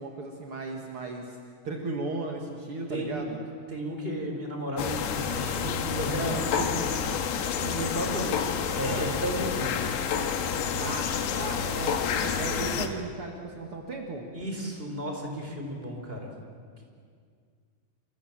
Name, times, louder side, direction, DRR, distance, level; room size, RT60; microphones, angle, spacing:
voice 1, 0.0-1.4 1.6-3.4 6.2-6.4 8.8-9.2 10.5-14.2, right 3 dB, 55° right, 1 dB, 1.5 m, -36 dB
voice 2, 2.9-3.2 3.7-7.1 7.6-9.9 14.3-16.3, equal, 10° right, 1 dB, 4.3 m, -33 dB
sound 1, 4.8-12.9, left 7 dB, 70° left, 3.6 m, -29 dB
28.5 x 27.5 x 7.5 m, 2.1 s
omnidirectional pair, 5.5 m